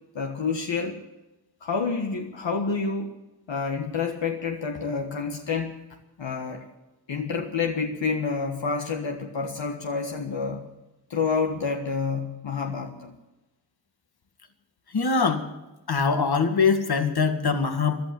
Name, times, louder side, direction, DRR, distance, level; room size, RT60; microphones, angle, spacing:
voice 1, 0.1-1.0 1.6-3.1 3.5-5.8 6.2-6.6 7.1-10.7 11.1-13.2, left 5 dB, 75° left, 3 dB, 1.5 m, -28 dB
voice 2, 14.9-15.5 15.9-18.0, left 5 dB, 55° left, 7 dB, 2.0 m, -23 dB
14.0 x 12.0 x 7.4 m, 1.0 s
cardioid pair, 45°, 45 cm